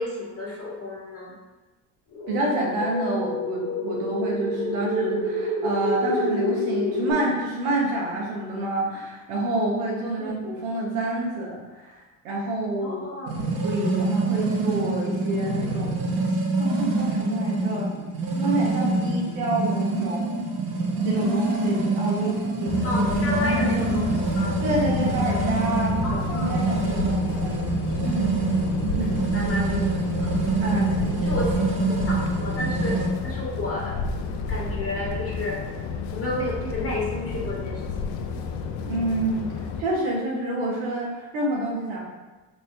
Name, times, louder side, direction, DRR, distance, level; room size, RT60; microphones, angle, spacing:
voice 1, 0.0-1.3 10.2-10.3 12.8-13.4 14.2-14.5 22.8-24.0 24.4-24.5 26.0-26.5 27.3-27.4 28.9-29.0 29.3-29.9 30.2-30.3 31.2-31.6 31.9-34.0 34.5-35.6 36.1-37.9, left 1 dB, 35° left, -4 dB, 1.4 m, -31 dB
sound 1, 2.1-7.1, left 1 dB, 50° left, 1.0 m, -28 dB
voice 2, 2.3-13.1 13.6-15.9 16.6-20.3 21.0-23.6 24.6-27.6 28.0-28.3 28.8-29.1 30.6-31.4 38.9-39.5 39.8-42.0, right 1 dB, 90° right, -3 dB, 1.0 m, -28 dB
sound 2, 13.3-33.1, right 3 dB, 55° right, 0.9 m, -25 dB
sound 3, 22.7-39.8, left 5 dB, 70° left, 0.5 m, -31 dB
3.4 x 2.6 x 3.3 m, 1.1 s
hypercardioid pair, 70°, 43 cm